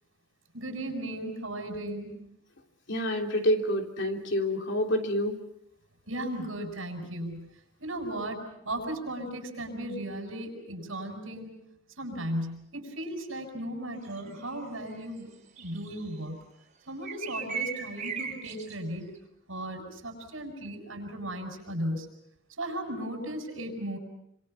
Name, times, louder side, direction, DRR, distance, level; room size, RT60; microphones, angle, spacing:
voice 1, 0.5-2.2 6.1-7.5 7.8-11.7 12.0-15.3 15.6-16.4 16.9-19.1 19.5-22.1 22.6-24.0, right 1 dB, 80° right, 4 dB, 7.3 m, -36 dB
voice 2, 2.9-5.4, left 1 dB, 65° left, 3 dB, 3.4 m, -27 dB
sound 1, 14.2-14.3 15.6-16.0 17.0-18.7, right 6 dB, 40° right, 3.9 m, -36 dB
27.5 x 26.5 x 5.8 m, 0.77 s
head